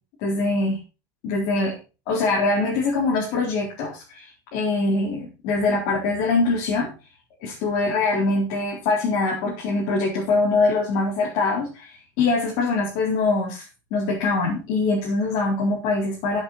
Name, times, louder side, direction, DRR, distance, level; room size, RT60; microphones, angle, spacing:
voice 1, 0.2-0.8 1.2-1.8 2.1-6.9 7.4-13.6 13.9-16.4, left 3 dB, 50° left, -3 dB, 4.2 m, -23 dB
13.5 x 8.0 x 4.3 m, 0.31 s
cardioid pair, 175°, 10 cm